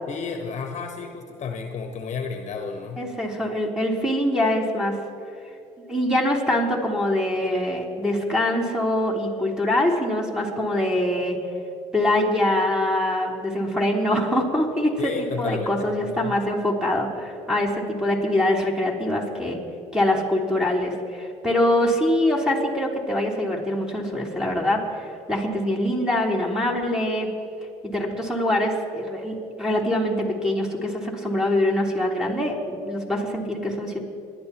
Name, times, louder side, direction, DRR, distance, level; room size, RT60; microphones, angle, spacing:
voice 1, 0.1-3.0 15.0-16.3, left 5 dB, 50° left, 4 dB, 1.2 m, -32 dB
voice 2, 3.0-4.9 5.9-11.4 11.9-14.9 15.4-19.6 19.9-27.3 27.8-34.0, left 1 dB, 5° right, -2 dB, 3.4 m, -24 dB
29.5 x 11.5 x 3.0 m, 2.5 s
hypercardioid pair, 65°, 16 cm